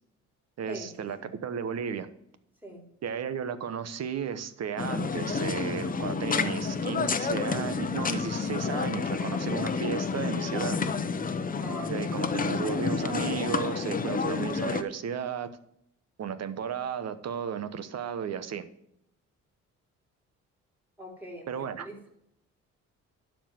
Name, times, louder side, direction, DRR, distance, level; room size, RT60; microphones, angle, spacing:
voice 1, 0.6-2.1 3.0-10.8 11.9-15.5 16.2-18.6 21.5-21.9, right 7 dB, 55° right, 12 dB, 1.1 m, -34 dB
sound 1, 4.8-14.8, left 5 dB, 30° left, 0.9 m, -30 dB
voice 2, 11.6-12.6 21.0-22.0, equal, 5° right, 0 dB, 4.3 m, -43 dB
11.5 x 4.7 x 7.6 m, 0.76 s
cardioid pair, 90°, 30 cm